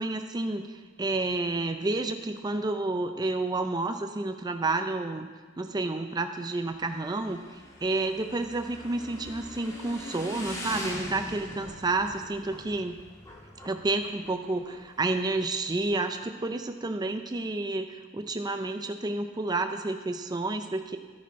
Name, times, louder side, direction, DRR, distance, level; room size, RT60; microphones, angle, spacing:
voice 1, 0.0-5.3 5.6-13.0 13.6-21.0, right 2 dB, 20° right, 6 dB, 0.5 m, -30 dB
Motorcycle / Engine, 6.6-15.9, left 1 dB, 20° left, 1.8 m, -42 dB
11.0 x 10.0 x 4.6 m, 1.5 s
head